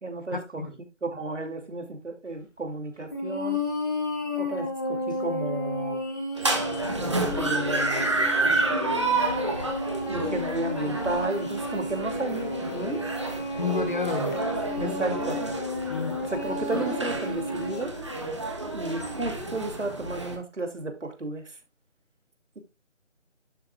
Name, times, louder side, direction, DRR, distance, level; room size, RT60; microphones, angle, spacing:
voice 1, 0.0-0.6 1.0-3.6 4.4-6.0 7.0-8.1 10.1-13.0 14.8-15.4 16.2-17.9 18.7-21.4, right 2 dB, 70° right, 2.7 m, -33 dB
sound 1, 3.1-17.8, left 1 dB, 15° left, 1.4 m, -32 dB
sound 2, 6.4-20.4, right 2 dB, 25° right, 1.4 m, -30 dB
voice 2, 13.6-14.4 14.8-15.3 15.9-16.2, left 4 dB, 40° left, 1.6 m, -31 dB
11.5 x 7.5 x 2.3 m
figure-of-eight pair, 170°, 37 cm